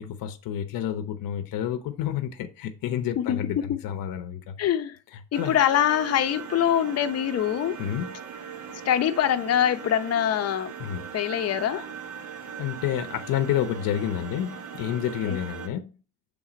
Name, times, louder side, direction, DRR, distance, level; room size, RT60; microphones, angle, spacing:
voice 1, 0.0-4.6 5.4-5.6 7.8-8.1 10.8-11.0 12.6-15.9, left 10 dB, 80° left, 0.8 m, -29 dB
voice 2, 3.2-3.8 4.6-5.0 5.3-7.8 8.8-10.7 11.1-11.9 15.2-15.4, left 10 dB, 45° left, 0.7 m, -24 dB
sound 1, 5.3-15.7, right 7 dB, 65° right, 1.2 m, -39 dB
7.2 x 3.6 x 5.0 m
cardioid pair, 105°, 34 cm